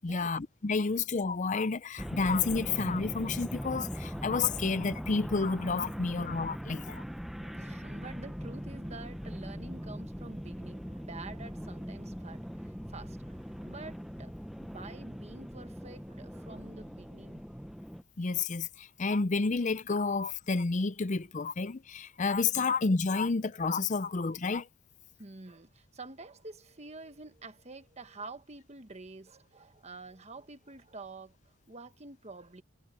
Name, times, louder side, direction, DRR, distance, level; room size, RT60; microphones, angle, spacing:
voice 1, 0.0-7.0 18.2-24.7, left 4 dB, 35° left, 0.5 m, -30 dB
sound 1, 2.0-18.0, equal, ahead, 0.7 m, -41 dB
voice 2, 7.4-14.3 14.6-17.5 25.2-32.6, right 3 dB, 30° right, 1.3 m, -48 dB
head